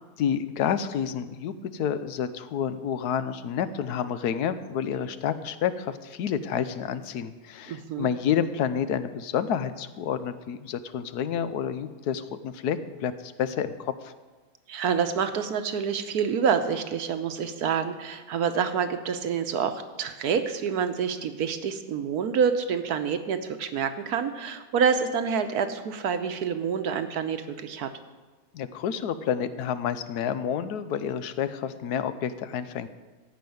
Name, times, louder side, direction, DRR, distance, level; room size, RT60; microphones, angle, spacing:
voice 1, 0.2-14.1 28.5-32.9, left 8 dB, 85° left, 12 dB, 1.2 m, -29 dB
voice 2, 7.7-8.1 14.7-27.9, right 6 dB, 75° right, 9 dB, 1.4 m, -27 dB
15.0 x 5.2 x 9.3 m, 1.3 s
omnidirectional pair, 1.7 m